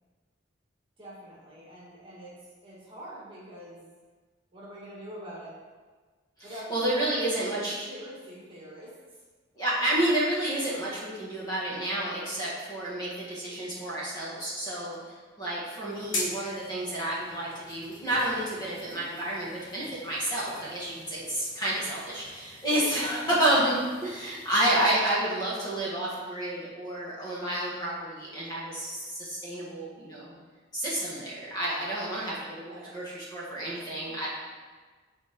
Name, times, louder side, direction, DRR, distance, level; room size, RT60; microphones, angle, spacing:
voice 1, 1.0-3.8 4.5-5.6 6.4-9.2 32.5-33.0, equal, 25° right, -6 dB, 1.8 m, -44 dB
voice 2, 6.7-7.7 9.6-30.3 30.7-34.3, right 1 dB, 20° left, -8 dB, 1.9 m, -30 dB
sound 1, 15.9-24.9, left 2 dB, 70° left, 1.8 m, -42 dB
9.7 x 4.3 x 3.8 m, 1.4 s
head